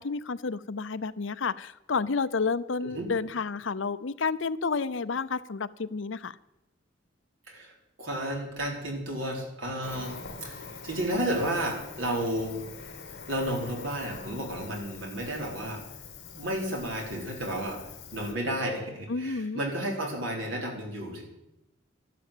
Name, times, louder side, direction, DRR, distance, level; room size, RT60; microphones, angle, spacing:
voice 1, 0.0-6.4 19.1-19.6, left 4 dB, 70° left, 15 dB, 0.7 m, -30 dB
voice 2, 8.0-10.1 10.4-12.6 13.3-15.8 16.4-17.8 18.1-21.2, right 1 dB, 80° right, 0 dB, 4.5 m, -32 dB
Cricket, 9.8-18.3, left 4 dB, 55° left, 2.6 m, -44 dB
12.5 x 12.0 x 8.5 m, 0.89 s
head